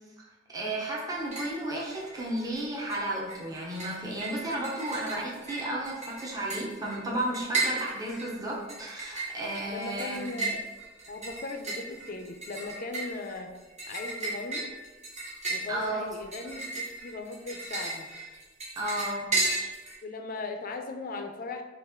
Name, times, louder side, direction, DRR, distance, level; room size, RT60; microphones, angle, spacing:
voice 1, 0.5-10.4 15.7-16.0 18.8-19.3, right 1 dB, 20° right, -4 dB, 0.8 m, -33 dB
sound 1, 1.1-1.6 1.9-2.6 2.9-19.9, right 3 dB, 40° right, 1.2 m, -35 dB
voice 2, 9.7-10.6 11.1-13.5 13.9-14.7 15.5-18.1 20.0-21.6, left 3 dB, 50° left, 5 dB, 0.5 m, -38 dB
5.5 x 2.5 x 3.6 m, 1.2 s
head